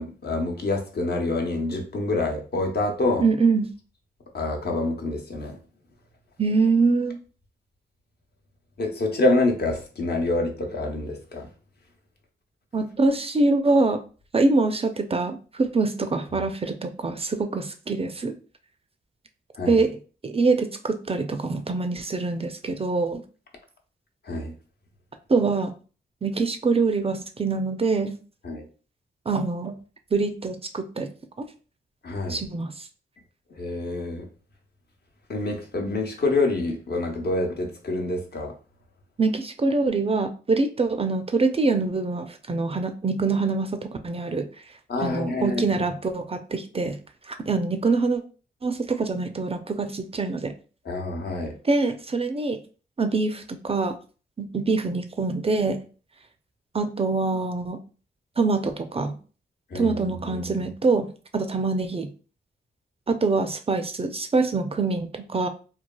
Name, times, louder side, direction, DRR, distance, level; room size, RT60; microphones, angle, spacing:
voice 1, 0.0-3.2 4.3-5.6 8.8-11.5 19.6-19.8 24.3-24.5 28.4-28.7 32.0-32.4 33.6-34.3 35.3-38.5 44.9-45.8 50.8-51.5 59.7-60.5, left 2 dB, 55° left, 2 dB, 0.8 m, -27 dB
voice 2, 3.2-3.7 6.4-7.2 12.7-14.0 14.3-18.3 19.7-19.9 20.2-23.2 25.3-25.7 26.2-28.2 29.3-29.8 30.1-31.1 31.4-31.5 32.3-32.8 39.2-44.5 45.0-47.0 47.3-48.2 48.6-50.5 51.6-52.6 53.0-53.9 54.4-55.8 56.7-57.8 58.4-59.2 59.7-61.1 61.3-62.1 63.1-65.5, right 3 dB, 30° right, 7 dB, 0.4 m, -24 dB
3.1 x 2.3 x 2.2 m, 0.37 s
cardioid pair, 55°, 19 cm